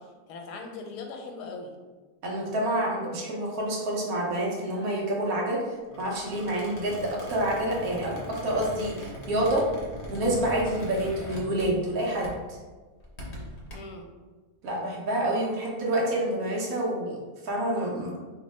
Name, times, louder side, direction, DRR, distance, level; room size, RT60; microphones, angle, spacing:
voice 1, 0.0-1.7 13.7-14.1, left 3 dB, 85° left, 3 dB, 1.2 m, -40 dB
voice 2, 2.2-9.7 10.1-12.6 14.6-17.2 17.4-18.1, right 1 dB, 65° right, -2 dB, 1.2 m, -28 dB
Squeak, 5.9-12.0 12.2-12.5 13.0-13.7, equal, 45° left, 0.5 m, -40 dB
3.1 x 2.1 x 4.0 m, 1.3 s
omnidirectional pair, 1.7 m